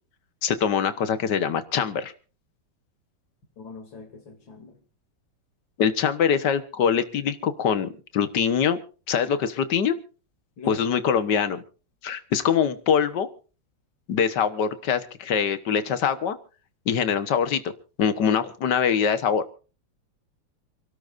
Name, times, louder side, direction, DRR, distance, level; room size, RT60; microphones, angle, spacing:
voice 1, 0.4-2.1 5.8-8.8 9.1-10.0 10.7-11.6 12.0-13.3 14.1-16.4 16.9-17.6 18.0-19.4, left 7 dB, 65° left, 1.9 m, -23 dB
voice 2, 3.6-4.8 10.6-10.8, left 3 dB, 85° left, 3.6 m, -42 dB
28.5 x 12.5 x 2.6 m
omnidirectional pair, 2.0 m